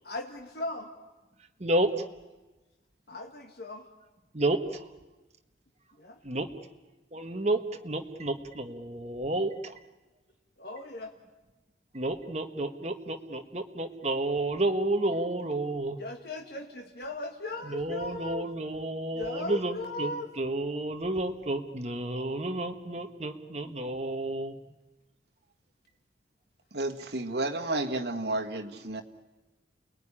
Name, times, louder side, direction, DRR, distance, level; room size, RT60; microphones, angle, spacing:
voice 1, 0.0-0.9 3.1-3.9 6.0-6.2 10.6-11.1 16.0-18.5 19.1-20.3, left 2 dB, 60° left, 3 dB, 1.7 m, -38 dB
voice 2, 1.6-2.0 4.3-4.8 6.2-6.5 7.1-9.7 11.9-16.0 17.7-24.5, right 2 dB, 35° right, 6 dB, 1.4 m, -31 dB
voice 3, 26.7-29.0, right 2 dB, 65° right, 4 dB, 1.8 m, -31 dB
29.0 x 20.0 x 10.0 m, 1.2 s
head